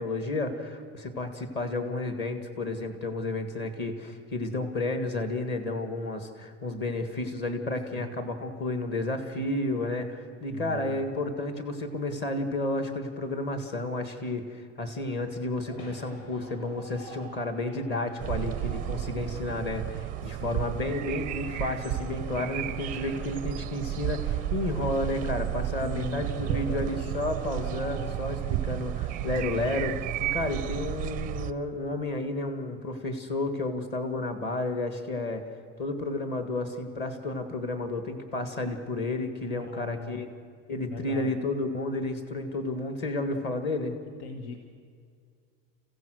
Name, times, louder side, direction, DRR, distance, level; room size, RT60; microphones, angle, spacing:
voice 1, 0.0-35.4 35.8-40.3 40.7-44.0, left 2 dB, 30° left, 7 dB, 1.7 m, -31 dB
voice 2, 10.5-11.1 20.2-20.6 25.8-27.1 39.5-40.2 40.8-41.4 44.2-44.6, left 2 dB, 80° left, 5 dB, 1.9 m, -39 dB
sound 1, 14.8-29.5, equal, 60° left, 8.0 m, -51 dB
sound 2, 18.2-31.5, right 13 dB, 25° right, 0.5 m, -32 dB
29.5 x 15.5 x 6.3 m, 2.1 s
cardioid pair, 170°, 35 cm